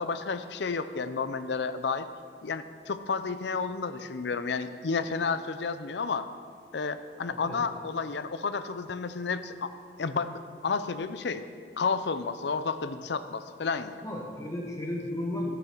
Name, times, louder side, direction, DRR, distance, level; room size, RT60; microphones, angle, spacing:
voice 1, 0.0-2.1 2.4-6.3 6.7-9.7 10.0-11.4 11.8-14.0, left 5 dB, 75° left, 11 dB, 0.5 m, -31 dB
voice 2, 7.3-7.6 14.0-15.5, left 1 dB, 15° left, 0 dB, 1.3 m, -34 dB
12.0 x 7.1 x 6.0 m, 2.1 s
head